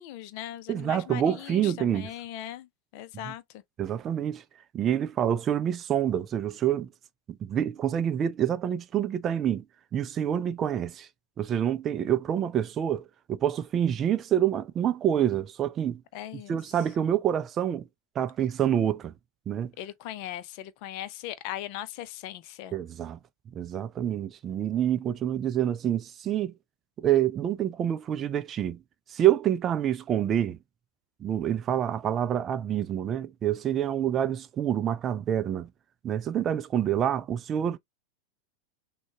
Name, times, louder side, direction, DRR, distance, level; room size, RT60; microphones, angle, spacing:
voice 1, 0.0-2.7 2.9-3.4 16.1-16.6 19.8-22.8, left 12 dB, 45° left, 0.7 m, -39 dB
voice 2, 0.7-2.1 3.2-3.3 3.8-4.4 4.7-6.9 7.4-9.6 9.9-11.1 11.4-16.0 16.5-17.8 18.2-19.1 19.5-19.7 22.7-23.2 23.5-26.5 27.0-28.8 29.1-30.6 31.2-35.7 36.0-37.8, right 10 dB, 25° right, 0.4 m, -27 dB
6.2 x 2.3 x 2.9 m
figure-of-eight pair, 90°, 0 cm